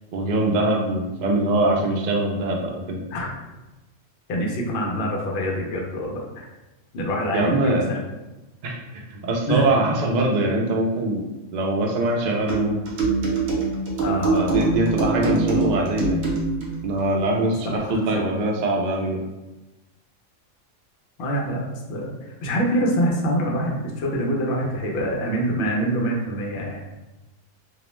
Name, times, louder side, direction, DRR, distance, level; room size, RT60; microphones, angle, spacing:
voice 1, 0.1-3.0 7.3-7.9 8.6-11.2 11.5-12.8 14.3-16.2 16.8-19.2, right 2 dB, 90° right, 0 dB, 0.4 m, -23 dB
voice 2, 4.3-6.3 6.9-8.0 9.5-9.7 14.0-14.5 18.1-18.2 21.2-22.1 22.4-26.8, equal, 60° left, -1 dB, 0.7 m, -25 dB
sound 1, 12.5-16.8, right 3 dB, 65° right, 0.8 m, -24 dB
2.3 x 2.0 x 3.0 m, 1.1 s
omnidirectional pair, 1.3 m